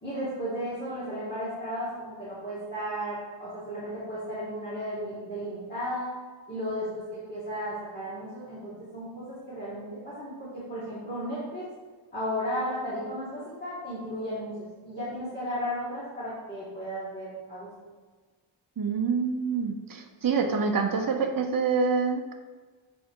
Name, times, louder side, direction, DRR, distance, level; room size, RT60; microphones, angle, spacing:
voice 1, 0.0-6.1 6.5-11.6 12.1-14.5 14.9-17.7, equal, 20° left, -12 dB, 2.2 m, -34 dB
voice 2, 18.8-22.3, right 5 dB, 45° right, 4 dB, 0.8 m, -26 dB
7.0 x 4.3 x 4.7 m, 1.4 s
wide cardioid pair, 160°, 47 cm